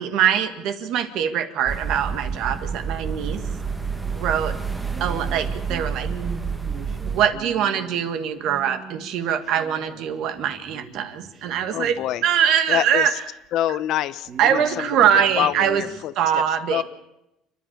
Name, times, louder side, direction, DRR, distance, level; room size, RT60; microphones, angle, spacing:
voice 1, 0.0-3.4 4.2-4.5 5.0-6.1 7.1-13.1 14.4-15.8 16.2-16.8, right 9 dB, 55° right, 9 dB, 1.9 m, -23 dB
sound 1, 1.7-7.3, right 5 dB, 10° right, 1.4 m, -29 dB
sound 2, 3.1-3.8 4.2-4.4 4.8-12.3 13.1-13.2 13.4-13.5 13.8-16.0, right 5 dB, 35° right, 1.9 m, -41 dB
voice 2, 11.7-12.2 12.7-13.2 13.5-15.0 15.4-16.4 16.7-16.8, left 12 dB, 55° left, 15 dB, 0.8 m, -26 dB
29.5 x 11.0 x 8.7 m, 0.88 s
cardioid pair, 155°, 0 cm